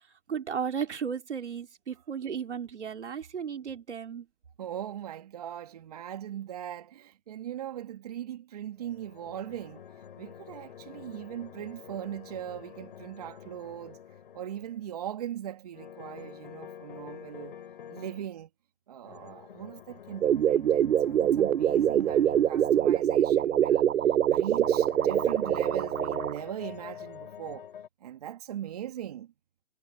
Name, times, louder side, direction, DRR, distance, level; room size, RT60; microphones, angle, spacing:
voice 1, 0.3-4.3, right 7 dB, 60° right, 3.5 m, -34 dB
voice 2, 4.6-14.0 14.3-17.6 17.9-18.5 18.9-27.7 28.0-29.3, right 10 dB, 30° right, 1.7 m, -40 dB
sound 1, 8.8-14.9 15.7-18.3 19.0-22.8 24.1-27.9, left 8 dB, 40° left, 5.7 m, -47 dB
sound 2, 20.2-26.4, right 10 dB, 85° right, 0.6 m, -24 dB
hypercardioid pair, 165°, 39 cm